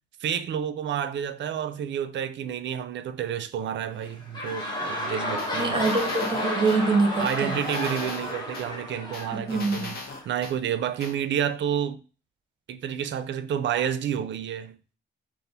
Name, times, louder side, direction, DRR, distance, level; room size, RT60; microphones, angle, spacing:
voice 1, 0.2-5.9 7.2-10.0 10.3-12.0 12.7-14.8, right 9 dB, 65° right, 0.4 m, -30 dB
sound 1, 3.9-10.2 10.9-11.0, left 1 dB, 20° left, 1.1 m, -32 dB
voice 2, 5.1-7.6 9.3-9.9, right 3 dB, 25° right, 0.9 m, -25 dB
sound 2, 5.4-6.8 7.3-8.7 9.1-10.6 11.0-11.1, left 3 dB, 50° left, 0.9 m, -38 dB
4.0 x 2.5 x 4.0 m
wide cardioid pair, 145°, 20 cm